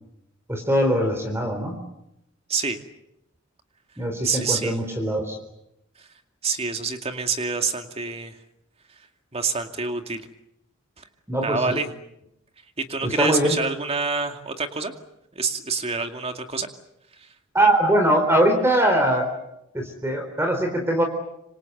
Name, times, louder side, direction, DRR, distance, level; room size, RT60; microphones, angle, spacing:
voice 1, 0.5-1.8 4.0-5.4 11.3-11.8 13.0-13.6 17.5-19.3 19.7-21.0, right 1 dB, 10° right, 4 dB, 3.9 m, -21 dB
voice 2, 4.2-4.8 6.0-6.1 6.4-8.4 9.3-10.3 11.0-11.1 11.4-11.9 12.8-14.9 15.4-16.7 17.2-17.3, right 4 dB, 30° right, 6 dB, 2.4 m, -27 dB
26.5 x 26.0 x 8.0 m, 0.84 s
head